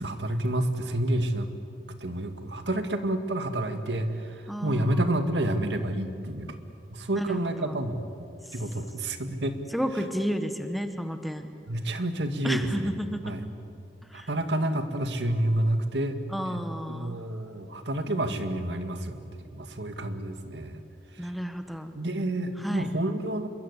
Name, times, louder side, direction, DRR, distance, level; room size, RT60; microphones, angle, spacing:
voice 1, 0.0-1.5 2.0-6.6 6.9-8.0 8.5-9.6 11.7-12.9 13.2-13.5 14.1-16.2 16.5-20.8 21.1-21.3 21.9-23.5, right 1 dB, 85° right, 8 dB, 2.0 m, -29 dB
voice 2, 4.5-5.1 7.1-7.7 9.7-11.5 12.4-13.2 14.1-14.3 16.3-17.2 21.2-21.9 22.6-22.9, equal, ahead, 7 dB, 1.4 m, -31 dB
27.5 x 22.5 x 8.4 m, 2.4 s
head